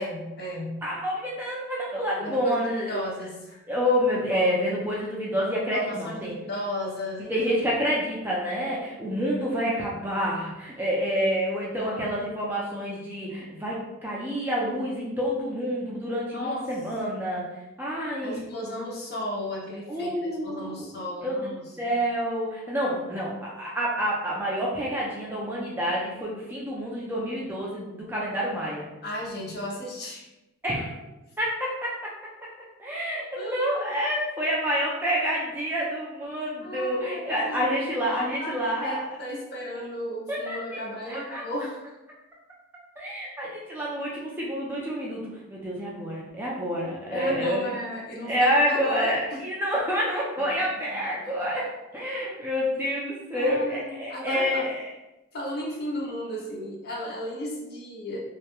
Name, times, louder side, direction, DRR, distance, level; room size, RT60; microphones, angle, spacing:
voice 1, 0.0-0.9 2.2-3.6 5.7-7.3 11.8-12.1 16.3-16.7 18.2-20.1 20.4-21.9 22.8-23.2 29.0-30.3 33.4-33.9 36.6-41.8 47.1-49.4 50.4-50.5 50.9-51.0 51.4-51.5 53.3-54.7 55.3-58.2, equal, 50° left, -2 dB, 0.5 m, -34 dB
voice 2, 0.8-2.9 3.7-6.3 7.3-17.4 17.8-18.4 19.9-20.9 21.2-21.4 21.8-28.8 30.6-30.9 31.4-31.7 32.8-39.0 40.3-41.4 43.0-47.6 48.2-51.7 51.9-54.9, equal, 10° right, -5 dB, 0.3 m, -28 dB
2.2 x 2.0 x 2.9 m, 0.98 s
head